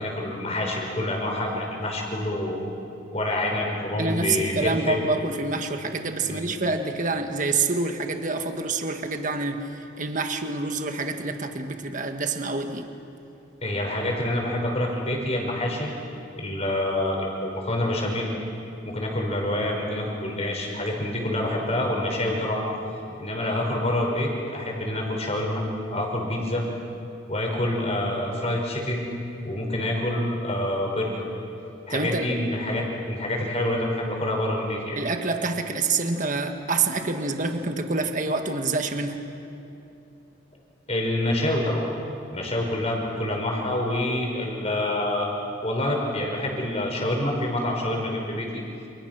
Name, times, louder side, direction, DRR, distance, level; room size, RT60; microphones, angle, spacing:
voice 1, 0.0-2.6 3.1-5.0 6.2-6.5 13.6-15.9 16.4-18.3 18.8-22.7 23.2-25.6 25.9-26.6 27.3-29.0 29.4-31.2 31.9-35.0 40.9-41.9 42.3-45.3 45.6-48.6, left 1 dB, 30° left, 0 dB, 5.7 m, -27 dB
voice 2, 4.0-12.9 31.9-32.3 35.0-39.2, right 3 dB, 40° right, 5 dB, 1.6 m, -27 dB
29.5 x 28.5 x 6.2 m, 2.8 s
head